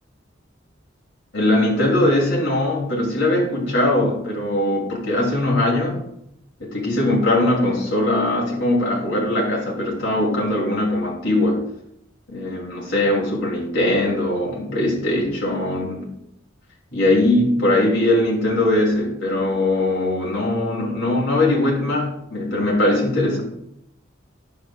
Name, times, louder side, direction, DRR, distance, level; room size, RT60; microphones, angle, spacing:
voice 1, 1.3-6.0 6.6-11.6 12.3-16.1 16.9-23.4, left 1 dB, 65° left, -3 dB, 2.6 m, -20 dB
10.0 x 7.3 x 2.3 m, 0.77 s
head